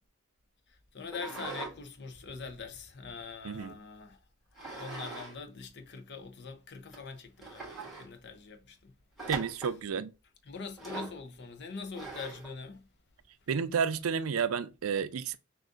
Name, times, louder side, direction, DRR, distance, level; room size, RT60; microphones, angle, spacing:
voice 1, 0.7-4.2 4.7-8.9 10.5-12.9, left 5 dB, 55° left, 0.7 m, -43 dB
sound 1, 1.1-1.8 2.2-3.5 4.6-5.4 5.6-5.7 6.4-6.5 6.9-7.0 7.4-8.1 9.2-9.8 10.8-11.2 11.9-12.5, right 3 dB, ahead, 1.9 m, -42 dB
voice 2, 9.3-10.1 13.5-15.4, right 6 dB, 80° right, 0.4 m, -31 dB
6.1 x 2.5 x 2.5 m
head